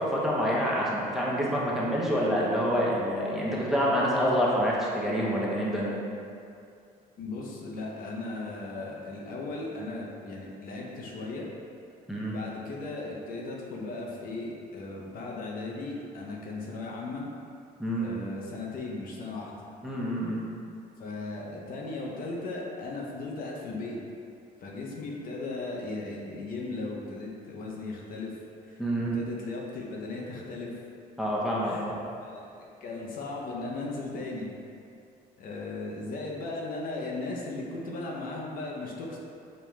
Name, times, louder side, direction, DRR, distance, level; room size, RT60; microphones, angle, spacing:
voice 1, 0.0-5.9 12.1-12.3 17.8-18.1 19.8-20.4 28.8-29.2 31.2-32.0, equal, ahead, -6 dB, 0.6 m, -27 dB
voice 2, 7.2-11.5 12.2-17.3 18.0-19.5 21.0-24.0 24.6-28.3 28.6-28.8 29.1-30.7 31.6-31.9 32.2-32.5 32.8-34.5 35.4-39.2, left 2 dB, 55° left, -2 dB, 0.6 m, -37 dB
5.1 x 2.2 x 3.0 m, 2.5 s
cardioid pair, 110°, 17 cm